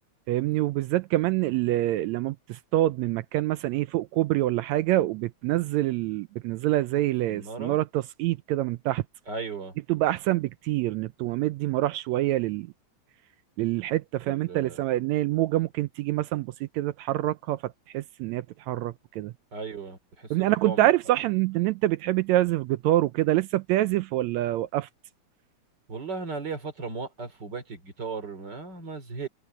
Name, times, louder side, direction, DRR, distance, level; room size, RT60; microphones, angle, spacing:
voice 1, 0.3-9.0 9.9-12.7 13.6-16.5 16.7-17.6 17.9-19.3 20.3-24.9, right 15 dB, 80° right, 1.7 m, -26 dB
voice 2, 7.3-7.8 9.3-9.7 14.2-14.8 19.5-20.9 25.9-29.3, right 4 dB, 35° right, 3.3 m, -36 dB
open air
omnidirectional pair, 3.5 m